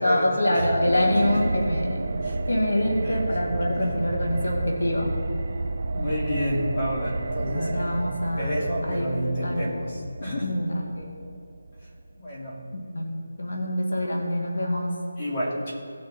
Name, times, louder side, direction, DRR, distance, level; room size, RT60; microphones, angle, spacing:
voice 1, 0.0-2.1 2.5-5.2 7.5-8.5 8.9-9.7 10.4-11.1 12.9-15.0, left 1 dB, 85° left, 1 dB, 1.9 m, -25 dB
voice 2, 0.5-1.3 2.2-2.4 2.8-3.2 3.7-3.9 5.9-7.7 8.4-10.5 11.8-12.6 15.2-15.7, equal, 25° left, -5 dB, 2.6 m, -30 dB
sound 1, 0.6-12.4 12.7-12.8, right 3 dB, 50° right, 0.5 m, -31 dB
17.0 x 6.4 x 4.2 m, 2.6 s
figure-of-eight pair, 175°, 0 cm